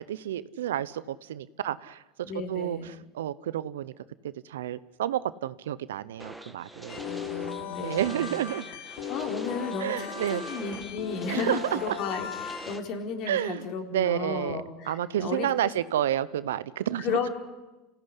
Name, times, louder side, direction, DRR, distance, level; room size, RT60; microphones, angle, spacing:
voice 1, 0.0-2.8 3.1-3.9 4.2-7.0 7.8-8.7 9.8-10.4 11.3-12.0 13.3-14.6 14.9-17.3, right 11 dB, 90° right, 17 dB, 0.9 m, -30 dB
voice 2, 2.2-3.0 7.0-8.3 8.7-8.8 9.1-15.7 17.0-17.3, left 5 dB, 50° left, 4 dB, 4.4 m, -34 dB
sound 1, 6.2-12.8, right 1 dB, ahead, 2.1 m, -44 dB
sound 2, 6.9-12.8, left 7 dB, 75° left, 3.3 m, -37 dB
27.0 x 17.0 x 10.0 m, 1.1 s
supercardioid pair, 110°, 0 cm